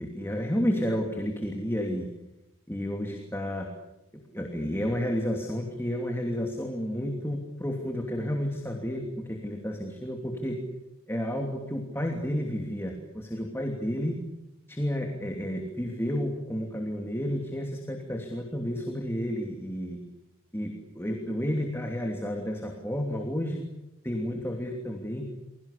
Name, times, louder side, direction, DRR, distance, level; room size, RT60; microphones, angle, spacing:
voice 1, 0.0-2.1 2.7-3.7 4.3-10.6 11.1-14.2 14.7-20.0 20.5-23.7 24.0-25.3, equal, 10° left, 2 dB, 2.9 m, -31 dB
30.0 x 22.5 x 8.5 m, 0.92 s
head